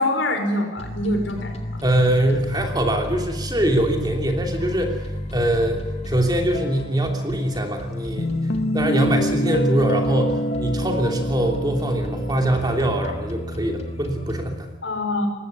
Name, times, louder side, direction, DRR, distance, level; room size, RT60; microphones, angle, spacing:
voice 1, 0.0-1.5 14.8-15.3, left 1 dB, 75° left, 4 dB, 5.4 m, -24 dB
sound 1, 0.8-14.5, left 1 dB, 35° left, 2.2 m, -31 dB
voice 2, 1.8-8.3 8.7-14.7, right 1 dB, 20° right, 3 dB, 3.0 m, -23 dB
Guitar, 8.2-13.2, equal, 60° left, 1.2 m, -26 dB
20.5 x 16.0 x 9.6 m, 1.2 s
head